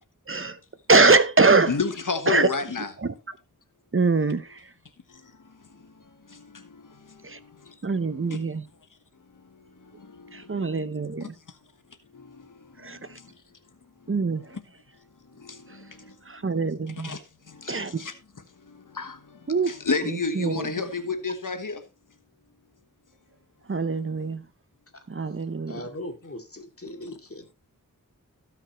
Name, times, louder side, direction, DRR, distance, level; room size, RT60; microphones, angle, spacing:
voice 1, 0.9-1.7 2.3-2.5 3.9-4.5 7.2-7.4 7.8-8.6 10.3-11.3 12.8-13.0 14.1-14.4 16.3-17.1 17.7-17.9 19.5-19.7 20.4-20.7 23.7-24.4 25.1-25.8, right 3 dB, 40° right, 0.8 m, -22 dB
voice 2, 1.7-2.9 7.9-8.4 11.2-11.3 15.4-15.6 17.0-17.2 17.6-18.1 18.9-19.2 19.6-21.8 26.9-27.0, left 4 dB, 70° left, 1.3 m, -29 dB
voice 3, 25.7-27.5, left 1 dB, 45° left, 2.4 m, -39 dB
17.5 x 5.9 x 3.0 m
wide cardioid pair, 75°, 33 cm